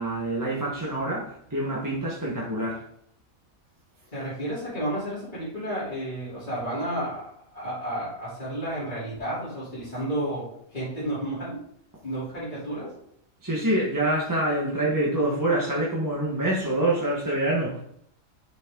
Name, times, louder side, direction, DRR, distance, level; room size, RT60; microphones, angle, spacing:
voice 1, 0.0-2.8 13.4-17.8, right 1 dB, 15° right, -6 dB, 1.5 m, -26 dB
voice 2, 4.1-7.2 7.5-11.6 12.0-12.9, right 1 dB, 30° left, -12 dB, 3.7 m, -31 dB
7.1 x 6.5 x 3.9 m, 0.70 s
omnidirectional pair, 1.5 m